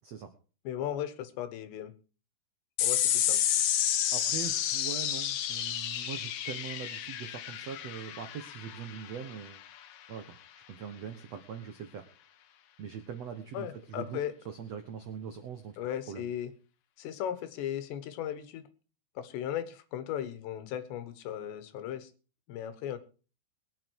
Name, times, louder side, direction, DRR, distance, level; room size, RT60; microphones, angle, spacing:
voice 1, 0.7-1.9 2.8-3.5 13.5-14.3 15.8-16.5 17.0-18.7 19.2-22.1 22.5-23.0, left 10 dB, 80° left, 12 dB, 3.5 m, -36 dB
sound 1, 2.8-9.6, left 11 dB, 65° left, 2.3 m, -30 dB
voice 2, 4.1-9.6 10.1-10.4 10.7-12.1 12.8-14.2 14.4-15.8 16.1-16.3, right 7 dB, 75° right, 7 dB, 1.5 m, -41 dB
21.5 x 8.8 x 4.7 m, 0.37 s
omnidirectional pair, 4.9 m